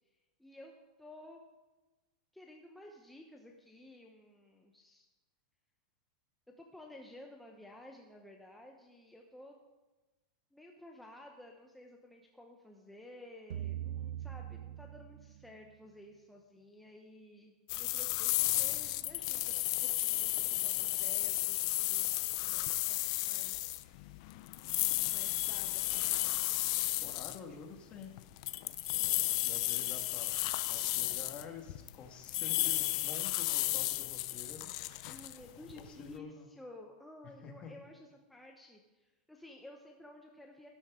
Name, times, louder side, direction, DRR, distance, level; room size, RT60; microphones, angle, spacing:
voice 1, 0.4-0.7 1.0-1.4 2.3-5.0 6.6-9.5 10.5-24.4 25.1-25.9 35.1-40.7, left 1 dB, 5° left, 1 dB, 1.0 m, -54 dB
sound 1, 13.5-15.7, right 11 dB, 80° right, 0.7 m, -41 dB
sound 2, 17.7-27.4 28.2-31.9 32.2-36.1, left 18 dB, 55° left, 0.6 m, -33 dB
voice 2, 27.0-28.1 28.9-30.4 30.7-34.7 35.6-36.5 37.4-37.7, left 5 dB, 30° left, 3 dB, 1.9 m, -49 dB
13.5 x 12.5 x 3.8 m, 1.1 s
supercardioid pair, 145°, 4 cm